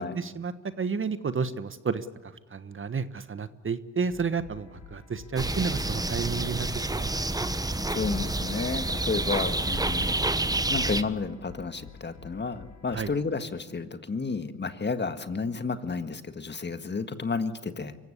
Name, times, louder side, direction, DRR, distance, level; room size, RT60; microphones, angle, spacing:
voice 1, 0.0-7.5 12.9-13.1, right 5 dB, 35° right, 12 dB, 1.3 m, -32 dB
sound 1, 4.1-13.2, left 6 dB, 85° left, 4.4 m, -49 dB
sound 2, 5.4-11.0, right 2 dB, 10° right, 1.2 m, -28 dB
voice 2, 7.9-10.3 10.7-18.0, left 4 dB, 30° left, 9 dB, 1.7 m, -31 dB
25.0 x 15.5 x 9.9 m, 1.3 s
supercardioid pair, 55°, 35 cm